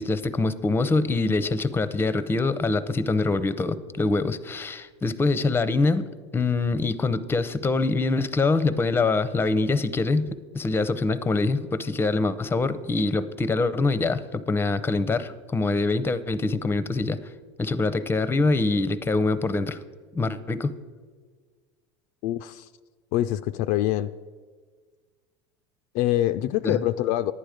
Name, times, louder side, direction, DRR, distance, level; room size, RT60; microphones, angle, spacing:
voice 1, 0.0-6.0 6.3-10.3 10.5-17.2 17.6-19.8 20.1-20.7 26.6-26.8, left 3 dB, 15° left, 15 dB, 0.6 m, -24 dB
voice 2, 22.2-22.7 23.1-24.1 25.9-27.3, left 13 dB, 55° left, 11 dB, 0.4 m, -25 dB
11.5 x 9.1 x 5.0 m, 1.5 s
hypercardioid pair, 85°, 15 cm